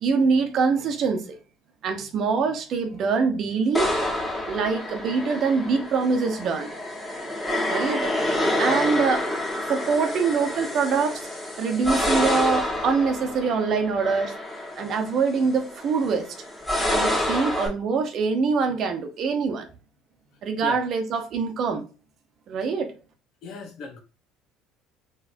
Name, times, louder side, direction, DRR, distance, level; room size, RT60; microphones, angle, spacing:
voice 1, 0.0-1.3 1.8-3.9 4.5-6.7 7.7-8.1 8.6-9.2 9.7-11.3 11.6-14.3 14.8-16.3 16.9-19.7 20.4-21.8 22.5-22.9, right 5 dB, 55° right, 0.9 m, -24 dB
sound 1, 3.7-17.7, left 1 dB, 10° left, 1.8 m, -28 dB
voice 2, 23.4-24.0, left 4 dB, 55° left, 1.1 m, -36 dB
4.0 x 3.2 x 2.7 m
hypercardioid pair, 70°, 0 cm